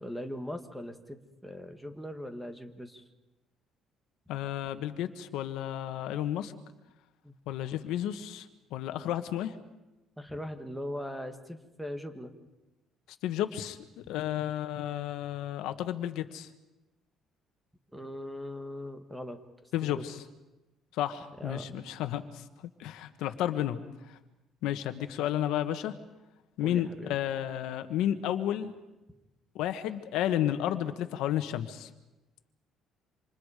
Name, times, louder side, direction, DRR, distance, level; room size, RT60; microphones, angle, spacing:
voice 1, 0.0-3.0 7.2-7.3 10.2-12.3 17.9-19.4 19.8-20.0 21.4-21.8 26.6-27.2, equal, 5° right, 7 dB, 1.6 m, -40 dB
voice 2, 4.3-6.5 7.5-9.5 13.2-13.8 14.1-16.5 19.7-20.2 20.9-22.4 22.8-23.8 24.1-24.2 24.6-25.9 26.6-28.7 29.5-31.9, left 11 dB, 80° left, 9 dB, 1.5 m, -32 dB
27.5 x 27.0 x 5.0 m, 1.0 s
cardioid pair, 155°, 0 cm